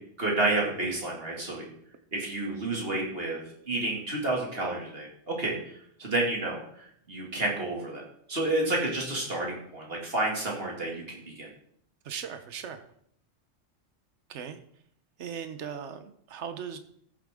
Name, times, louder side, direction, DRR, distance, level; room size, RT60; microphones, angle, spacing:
voice 1, 0.2-1.6 2.1-3.4 3.6-11.5, right 2 dB, 50° right, -2 dB, 2.6 m, -30 dB
voice 2, 12.0-12.8 14.3-14.6 15.2-16.8, right 7 dB, 70° right, 10 dB, 1.2 m, -38 dB
14.0 x 7.4 x 3.6 m, 0.67 s
omnidirectional pair, 1.3 m